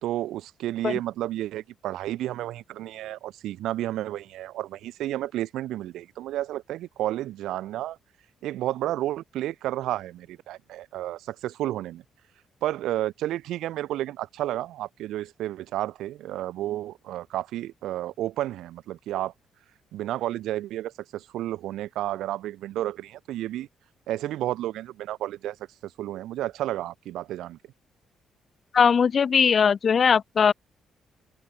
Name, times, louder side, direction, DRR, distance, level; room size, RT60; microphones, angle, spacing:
voice 1, 0.0-8.0 8.4-12.0 12.6-19.3 19.9-23.7 24.1-25.6 25.8-27.6, right 14 dB, 85° right, 1.7 m, -31 dB
voice 2, 28.7-30.5, left 6 dB, 40° left, 0.5 m, -20 dB
open air
cardioid pair, 130°, 0 cm